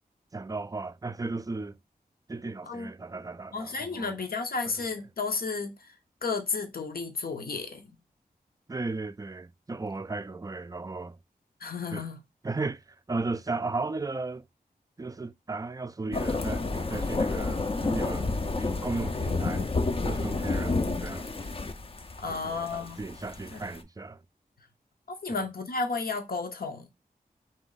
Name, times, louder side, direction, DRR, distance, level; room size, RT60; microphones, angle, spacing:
voice 1, 0.3-1.8 2.3-4.2 8.7-11.2 11.9-12.0 12.4-14.4 15.0-18.3 18.6-19.7 20.0-21.5 22.3-24.2 25.3-25.4, right 3 dB, 25° right, 0.3 m, -35 dB
voice 2, 3.5-5.9 6.2-8.0 11.6-12.2 22.2-23.0 23.5-23.6 25.1-26.9, left 4 dB, 70° left, 0.8 m, -33 dB
sound 1, 16.1-23.8, left 3 dB, 35° left, 0.5 m, -30 dB
4.2 x 3.0 x 3.9 m
wide cardioid pair, 85°, 16 cm